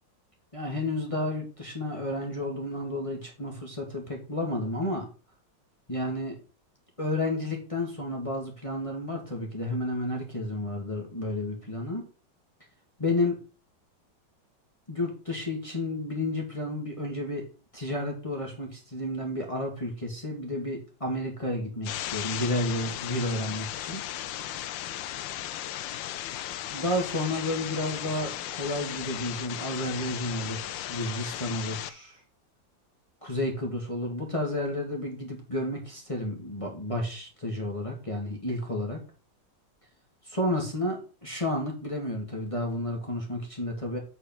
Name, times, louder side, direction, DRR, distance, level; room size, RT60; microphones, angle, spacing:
voice 1, 0.5-5.1 5.9-6.4 7.0-12.1 13.0-13.4 14.9-17.5 17.7-24.1 26.7-32.2 33.2-39.0 40.2-44.0, left 1 dB, 15° left, 0 dB, 1.9 m, -31 dB
sound 1, 21.8-31.9, left 12 dB, 85° left, 1.4 m, -36 dB
8.2 x 4.7 x 6.0 m, 0.35 s
omnidirectional pair, 2.0 m